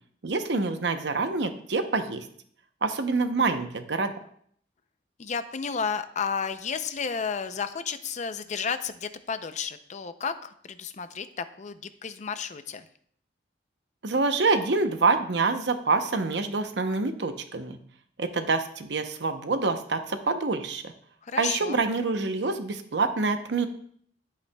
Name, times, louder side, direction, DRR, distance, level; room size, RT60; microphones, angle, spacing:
voice 1, 0.2-2.3 2.8-4.1 14.0-17.8 18.2-20.9 21.4-23.7, right 3 dB, 75° right, 8 dB, 0.8 m, -26 dB
voice 2, 5.2-12.8 21.3-21.8, left 6 dB, 40° left, 11 dB, 0.5 m, -32 dB
11.0 x 8.3 x 2.3 m, 0.62 s
head